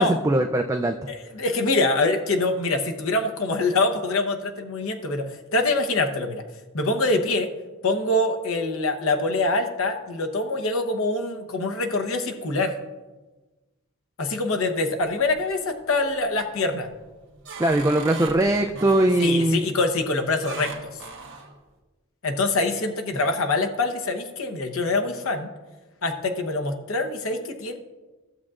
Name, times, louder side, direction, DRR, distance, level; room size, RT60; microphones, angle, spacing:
voice 1, 0.0-1.0 17.6-19.6, right 1 dB, 15° right, 4 dB, 0.3 m, -21 dB
voice 2, 1.1-6.4 6.7-7.5 7.8-12.7 14.2-16.9 19.2-20.9 22.2-25.5 26.0-27.8, left 2 dB, 80° left, 5 dB, 0.9 m, -24 dB
sound 1, 15.0-15.7 16.1-16.5 17.0-19.6 20.4-21.6, right 4 dB, 60° right, 1.3 m, -39 dB
15.0 x 7.3 x 2.4 m, 1.2 s
head